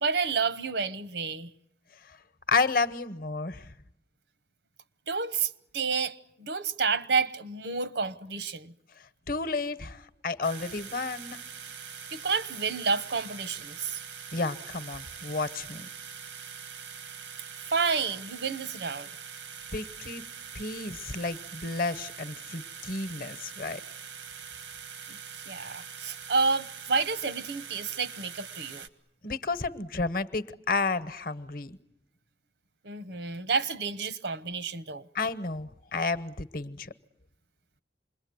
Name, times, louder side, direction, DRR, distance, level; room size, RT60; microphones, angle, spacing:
voice 1, 0.0-1.5 5.1-8.7 12.1-14.0 17.6-19.1 25.1-28.9 32.8-35.1, right 4 dB, 75° right, 1.0 m, -30 dB
voice 2, 2.5-3.7 9.3-11.4 14.3-15.9 19.7-20.2 20.5-23.8 29.2-31.8 35.1-36.9, left 3 dB, 50° left, 1.0 m, -31 dB
sound 1, 10.4-28.9, right 7 dB, 90° right, 1.6 m, -43 dB
27.5 x 22.0 x 9.5 m
head